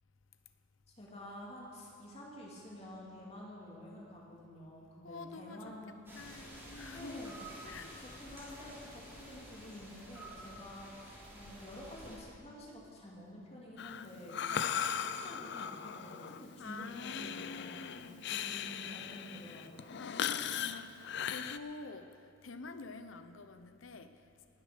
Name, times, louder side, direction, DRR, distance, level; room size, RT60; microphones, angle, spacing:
voice 1, 1.0-6.0 6.9-7.4 8.0-14.4 14.6-19.9, left 1 dB, 30° left, -3 dB, 2.6 m, -49 dB
voice 2, 5.0-5.7 6.2-7.4 7.6-8.0 14.4-14.8 16.6-18.3 20.0-22.2 22.4-24.1, left 3 dB, 75° left, 9 dB, 0.8 m, -47 dB
sound 1, 6.1-12.2, right 1 dB, 10° right, 3.8 m, -50 dB
Breathing, 13.8-21.6, left 8 dB, 60° left, 0.5 m, -39 dB
19.0 x 8.4 x 6.8 m, 2.4 s
head